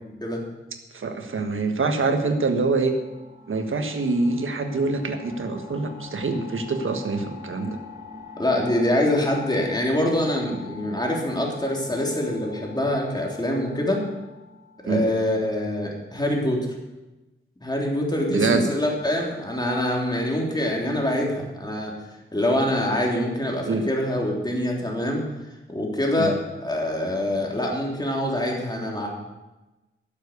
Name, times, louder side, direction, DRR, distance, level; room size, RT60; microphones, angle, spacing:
voice 1, 0.9-3.0 3.5-7.8 14.8-15.0 18.3-18.7 23.6-23.8 26.2-26.3, right 3 dB, 85° right, 6 dB, 1.5 m, -25 dB
sound 1, 2.1-15.6, left 4 dB, 20° right, 5.5 m, -44 dB
voice 2, 8.4-14.0 14.8-16.7 17.6-21.9 22.3-25.2 25.7-29.1, left 1 dB, 20° left, -1 dB, 3.3 m, -25 dB
12.0 x 7.5 x 8.1 m, 1.1 s
wide cardioid pair, 80°, 21 cm